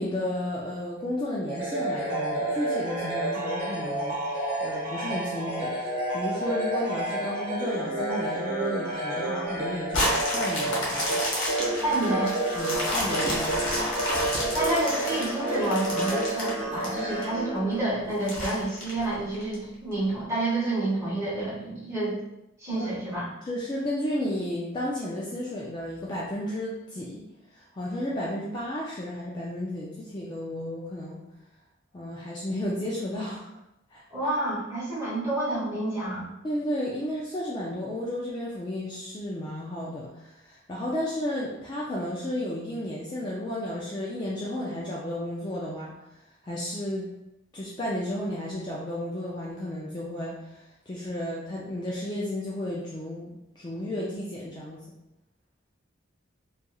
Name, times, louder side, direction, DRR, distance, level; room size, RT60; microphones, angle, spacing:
voice 1, 0.0-11.2 12.6-13.7 22.7-22.9 23.5-27.2 27.5-31.2 31.9-33.6 33.9-34.0 36.4-45.9 46.4-47.1 47.5-54.9, left 1 dB, 20° left, -6 dB, 0.3 m, -33 dB
sound 1, 1.5-18.2, right 1 dB, 40° right, 1.1 m, -30 dB
sound 2, 9.9-17.2 17.7-17.8 18.3-19.5 20.1-20.2, left 1 dB, 60° left, 0.9 m, -30 dB
voice 2, 11.8-12.3 14.5-22.2 22.6-23.3 34.1-36.3, right 2 dB, 15° right, -10 dB, 1.3 m, -29 dB
2.9 x 2.4 x 2.3 m, 0.90 s
head